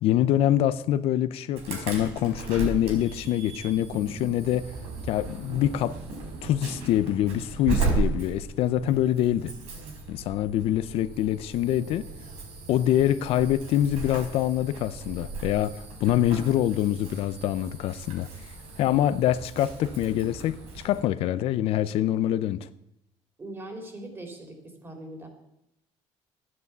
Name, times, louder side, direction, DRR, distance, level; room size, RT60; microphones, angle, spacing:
voice 1, 0.0-4.7 5.1-5.9 6.4-9.5 10.1-12.1 12.7-18.3 18.8-22.7, left 12 dB, 70° left, 14 dB, 0.7 m, -25 dB
Insect / Alarm, 1.6-21.0, right 3 dB, 80° right, 5.0 m, -36 dB
voice 2, 23.4-24.6 24.8-25.3, right 1 dB, 25° right, 3 dB, 3.4 m, -40 dB
12.0 x 9.6 x 8.2 m, 0.82 s
cardioid pair, 125°, 10 cm